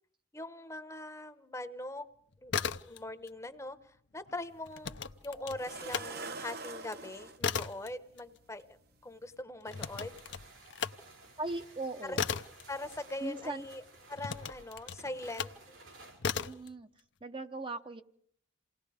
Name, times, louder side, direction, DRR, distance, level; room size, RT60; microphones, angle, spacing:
voice 1, 0.3-2.1 2.4-2.5 2.9-5.0 5.2-8.8 9.0-10.2 12.1-12.2 12.7-13.8 14.1-15.8, left 2 dB, 15° left, 10 dB, 0.9 m, -42 dB
sound 1, 2.3-3.3 3.6-6.1 6.5-13.5 14.2-15.6 16.2-16.7, left 6 dB, 70° left, 0.7 m, -37 dB
sound 2, 4.4-4.5 5.6-7.4 8.6-8.7 9.2-9.4, right 3 dB, 55° right, 1.0 m, -43 dB
sound 3, 9.6-16.2, right 2 dB, 85° right, 5.4 m, -55 dB
voice 2, 11.4-12.2 13.2-13.7 16.4-16.9 17.2-18.0, right 2 dB, 25° right, 7 dB, 0.8 m, -39 dB
28.0 x 18.5 x 5.0 m, 0.62 s
head